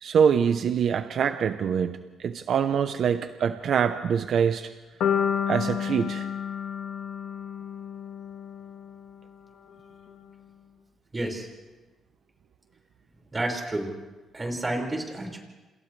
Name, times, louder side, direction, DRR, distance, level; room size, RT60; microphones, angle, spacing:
voice 1, 0.0-4.7 5.5-6.3, right 7 dB, 65° right, 9 dB, 0.8 m, -24 dB
sound 1, 5.0-9.1, left 8 dB, 75° left, 1.8 m, -30 dB
voice 2, 11.1-11.5 13.3-13.9 14.3-15.4, right 1 dB, 25° right, 1 dB, 5.4 m, -30 dB
29.0 x 27.0 x 3.4 m, 1.2 s
cardioid pair, 90°, 0 cm